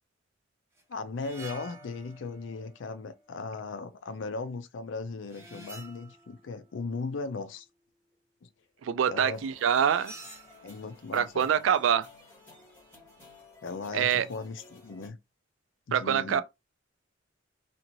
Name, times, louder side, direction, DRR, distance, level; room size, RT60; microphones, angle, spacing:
sound 1, 0.8-0.9 1.2-4.1 5.3-6.7 9.6-10.9, right 2 dB, 15° right, 0.8 m, -49 dB
voice 1, 0.9-7.7 8.4-8.5 9.0-9.5 10.6-11.5 13.6-15.2 15.9-16.4, left 4 dB, 80° left, 0.5 m, -37 dB
voice 2, 8.8-10.1 11.1-12.1 13.9-14.3 15.9-16.4, right 8 dB, 90° right, 0.3 m, -25 dB
sound 2, 9.3-15.1, left 3 dB, 10° left, 1.5 m, -55 dB
2.7 x 2.5 x 3.0 m
head